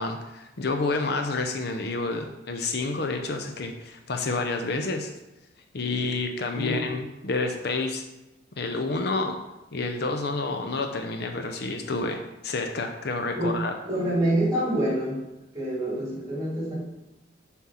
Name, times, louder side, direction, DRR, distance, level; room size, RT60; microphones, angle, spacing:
voice 1, 0.0-5.1 5.7-8.0 8.6-9.4 9.7-13.7, left 3 dB, 55° left, 5 dB, 0.7 m, -29 dB
voice 2, 13.8-15.2 15.5-16.8, right 1 dB, 20° right, -5 dB, 2.6 m, -26 dB
7.4 x 4.5 x 5.7 m, 0.97 s
head